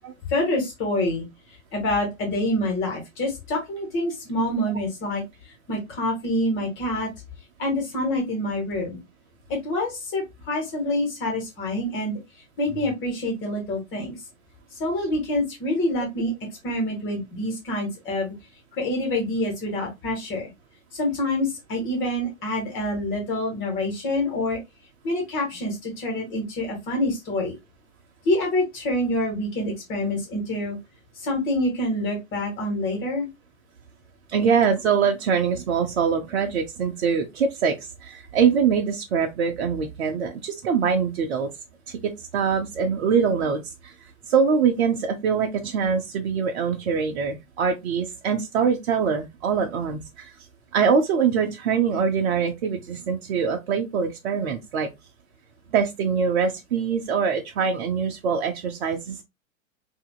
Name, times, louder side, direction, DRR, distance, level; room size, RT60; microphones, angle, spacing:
voice 1, 0.3-7.1 7.6-9.0 9.5-12.2 12.6-14.2 14.7-16.3 16.6-18.3 18.7-20.5 20.9-24.6 25.0-27.5 28.2-30.8 31.1-33.3, left 1 dB, 30° left, 1.7 m, -26 dB
voice 2, 34.3-41.5 41.9-43.9 44.3-50.3 50.7-54.9 55.7-59.2, right 6 dB, 50° right, 0.8 m, -23 dB
5.6 x 2.8 x 2.2 m
figure-of-eight pair, 100°, 41 cm